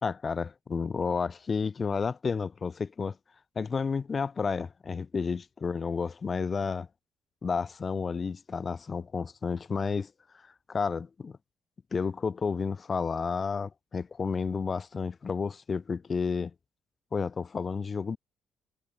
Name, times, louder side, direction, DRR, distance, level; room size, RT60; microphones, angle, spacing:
voice 1, 0.0-3.2 3.6-6.9 7.4-10.1 10.7-11.4 11.9-16.5 17.1-18.2, left 5 dB, 35° left, 0.4 m, -31 dB
cardioid pair, 100°, 0 cm